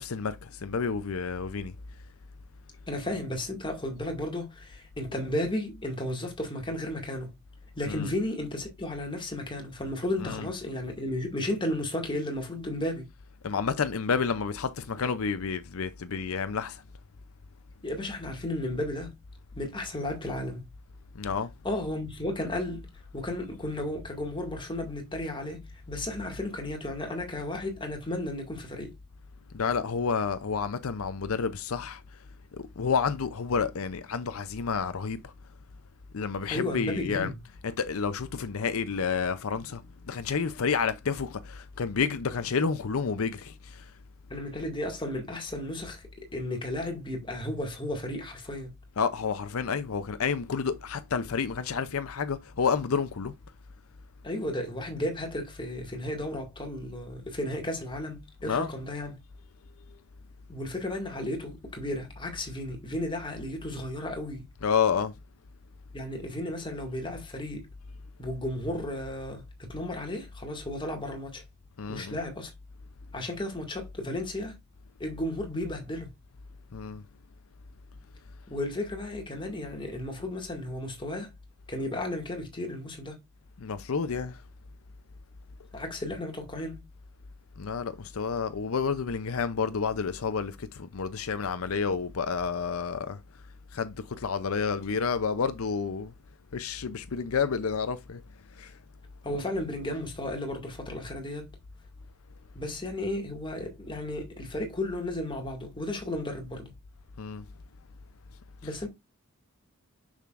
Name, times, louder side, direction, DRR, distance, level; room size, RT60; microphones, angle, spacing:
voice 1, 0.0-1.7 7.9-8.1 10.2-10.5 13.4-16.8 21.1-21.5 29.5-32.0 32.6-35.2 36.1-37.3 37.6-39.8 40.1-43.8 49.0-53.3 58.4-58.7 64.6-65.1 71.8-72.2 76.7-77.0 83.6-84.4 87.6-93.2 93.7-96.1 96.5-98.2 98.6-98.7 107.2-107.4 108.6-108.8, left 5 dB, 75° left, 0.6 m, -30 dB
voice 2, 2.9-7.3 7.8-13.1 17.8-19.1 19.5-20.6 21.6-22.9 23.1-28.9 36.5-37.4 44.3-48.7 54.2-59.2 60.5-64.5 65.9-67.7 68.2-71.4 71.9-72.5 73.1-74.6 75.0-76.1 78.5-81.3 81.7-83.2 85.7-86.8 99.2-101.5 102.5-106.7 108.6-108.9, left 1 dB, 25° left, 2.1 m, -34 dB
6.7 x 6.5 x 2.5 m
head